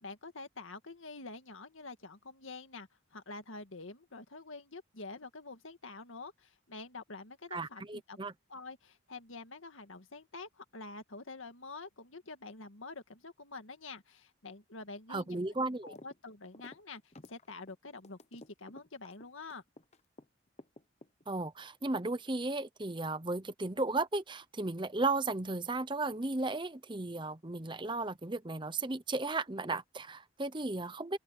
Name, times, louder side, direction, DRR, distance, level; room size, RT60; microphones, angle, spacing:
voice 1, 0.0-8.2 8.5-15.4 15.8-19.6, left 3 dB, 85° left, 2.0 m, -47 dB
voice 2, 7.5-8.3 15.1-15.9 21.3-31.2, right 2 dB, 25° right, 0.8 m, -35 dB
sound 1, 15.9-16.2 16.4-20.2 20.6-21.5, left 2 dB, 35° left, 0.9 m, -53 dB
open air
head